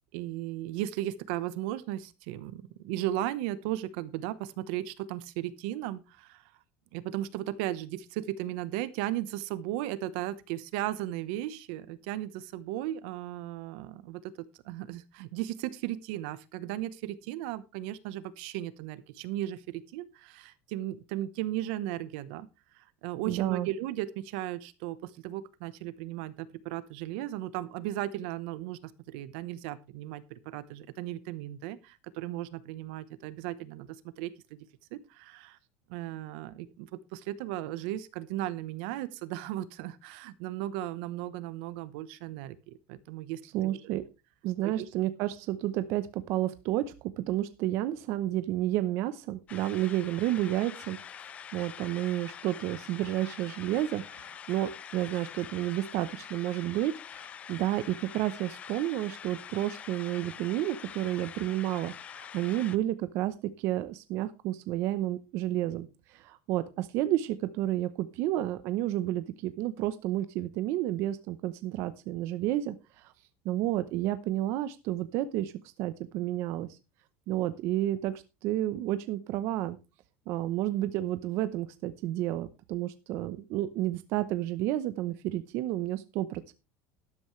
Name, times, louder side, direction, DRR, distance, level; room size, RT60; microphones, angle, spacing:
voice 1, 0.1-6.4 6.9-22.5 22.7-34.6 34.9-35.6 35.9-43.8 44.6-44.9, right 13 dB, 65° right, 16 dB, 1.0 m, -36 dB
voice 2, 23.2-23.7 43.5-44.0 44.4-51.0 51.5-73.1 73.4-75.5 75.8-76.8 77.3-79.8 80.3-86.5, right 14 dB, 45° right, 12 dB, 0.8 m, -31 dB
sound 1, 49.5-62.8, left 8 dB, 20° left, 0.6 m, -45 dB
12.5 x 12.0 x 3.2 m, 0.27 s
cardioid pair, 175°, 6 cm